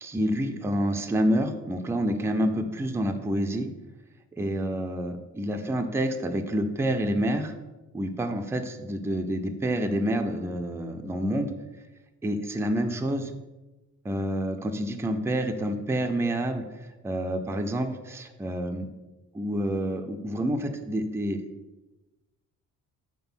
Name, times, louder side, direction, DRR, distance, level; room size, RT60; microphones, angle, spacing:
voice 1, 0.0-3.7 4.4-7.5 7.9-11.5 12.2-13.3 14.0-18.9 19.3-21.4, right 1 dB, 10° right, 6 dB, 0.4 m, -28 dB
5.9 x 4.4 x 5.6 m, 1.1 s
cardioid pair, 160°, 30 cm